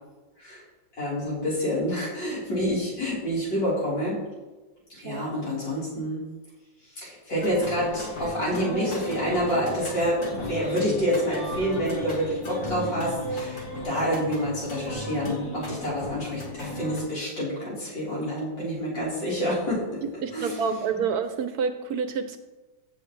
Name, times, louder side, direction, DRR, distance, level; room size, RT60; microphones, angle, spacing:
voice 1, 1.0-4.2 4.9-6.2 7.0-20.0 20.3-20.7, equal, 80° left, -8 dB, 4.6 m, -28 dB
sound 1, 7.4-17.0, equal, 55° left, 2.3 m, -35 dB
voice 2, 20.0-22.4, right 6 dB, 70° right, 9 dB, 1.0 m, -28 dB
15.0 x 7.3 x 3.2 m, 1.2 s
omnidirectional pair, 2.0 m